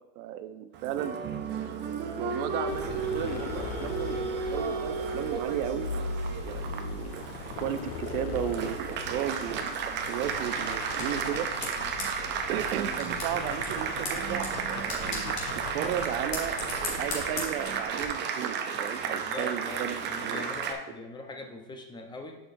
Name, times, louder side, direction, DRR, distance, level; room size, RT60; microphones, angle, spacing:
voice 1, 0.2-1.2 2.2-5.9 6.4-7.2 7.6-11.5 12.5-15.4 15.7-16.6 16.8-20.5, right 10 dB, 60° right, 10 dB, 0.8 m, -34 dB
Applause, 0.7-20.7, right 6 dB, 25° right, 0.5 m, -33 dB
sound 1, 2.7-17.5, left 6 dB, 65° left, 0.8 m, -40 dB
sound 2, 10.3-18.0, left 3 dB, 45° left, 2.9 m, -40 dB
voice 2, 19.1-22.4, left 2 dB, 10° left, 3 dB, 0.8 m, -41 dB
11.5 x 6.3 x 2.7 m, 0.94 s
supercardioid pair, 135°, 49 cm